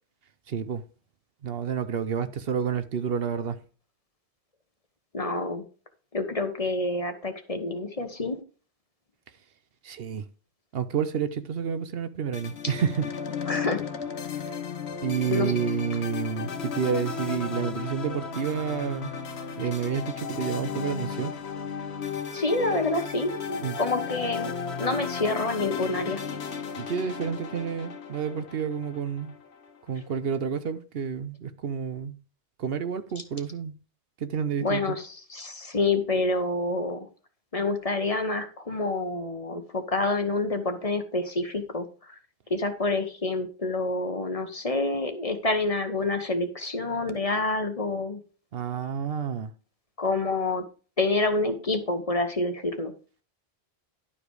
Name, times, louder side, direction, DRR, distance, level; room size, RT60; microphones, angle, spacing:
voice 1, 0.5-0.8 1.4-3.6 9.8-10.3 10.7-13.1 14.3-14.6 15.0-19.2 19.5-21.4 23.6-23.8 26.7-29.3 29.9-32.2 32.6-33.7 34.2-35.0 48.5-49.5, right 7 dB, 70° right, 0.9 m, -29 dB
voice 2, 5.1-5.6 6.1-8.4 13.5-13.8 15.3-15.5 22.3-26.2 34.6-37.0 37.5-41.9 42.5-48.2 50.0-50.6 51.0-52.9, left 2 dB, 35° left, 1.3 m, -27 dB
sound 1, 12.3-29.7, left 6 dB, 85° left, 1.2 m, -34 dB
11.5 x 5.0 x 4.8 m
omnidirectional pair, 1.1 m